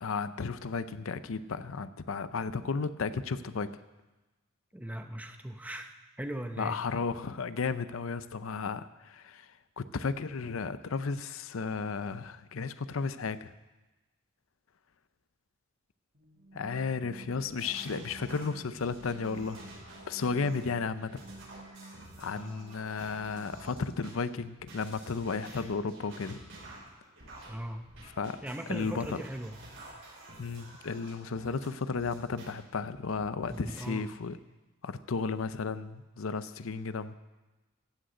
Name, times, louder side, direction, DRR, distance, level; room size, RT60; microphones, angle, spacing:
voice 1, 0.0-3.7 6.6-9.5 9.8-13.5 16.5-19.7 20.1-21.2 22.2-26.4 28.0-28.4 28.7-29.2 30.4-34.4 34.8-37.1, left 4 dB, 80° left, 13 dB, 0.6 m, -34 dB
voice 2, 4.7-5.9 6.2-6.8 22.4-22.6 27.5-27.9 28.4-29.6 33.5-34.1, right 1 dB, 5° right, 6 dB, 0.7 m, -39 dB
sound 1, 16.1-23.9, right 2 dB, 50° right, 1.5 m, -52 dB
sound 2, 17.2-24.1 24.6-32.5 32.9-33.8, right 2 dB, 70° right, 5.7 m, -50 dB
15.5 x 6.4 x 7.9 m, 1.1 s
head